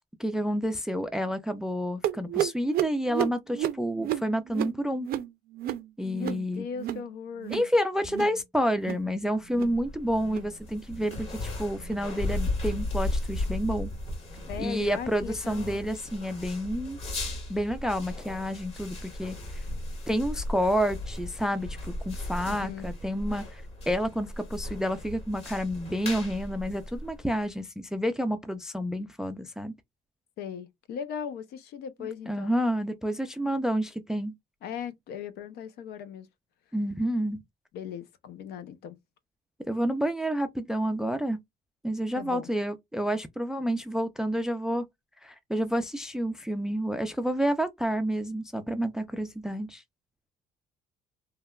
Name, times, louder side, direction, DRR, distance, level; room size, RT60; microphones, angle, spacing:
voice 1, 0.2-5.1 6.0-6.6 7.5-13.9 14.6-17.0 17.5-19.4 20.1-29.7 32.3-34.3 36.7-37.4 39.7-41.4 41.8-44.8 45.2-49.8, equal, 5° right, 0.4 m, -29 dB
sound 1, 2.0-7.1 7.3-7.7 8.0-8.4 8.7-9.1 9.4-9.8 10.2-10.5 11.0-11.3 11.8-12.0 12.6-12.8 13.5-13.6 14.3-14.4 15.2-15.3, right 12 dB, 65° right, 0.5 m, -33 dB
voice 2, 6.0-7.6 14.5-15.8 22.5-22.9 30.4-32.6 34.6-36.3 37.7-39.0 42.2-42.5, left 7 dB, 75° left, 0.6 m, -38 dB
sound 2, 9.6-27.4, left 2 dB, 35° left, 1.7 m, -36 dB
3.3 x 2.2 x 2.2 m
cardioid pair, 110°, 17 cm